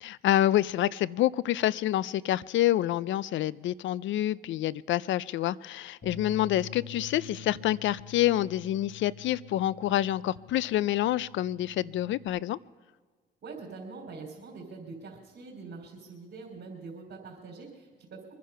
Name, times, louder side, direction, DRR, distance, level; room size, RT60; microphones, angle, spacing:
voice 1, 0.0-12.6, left 13 dB, 70° left, 0.5 m, -27 dB
Bass guitar, 6.0-12.3, left 6 dB, 55° left, 6.6 m, -47 dB
voice 2, 13.4-18.3, right 4 dB, 60° right, 3.7 m, -44 dB
23.5 x 10.5 x 5.6 m
cardioid pair, 90°, 20 cm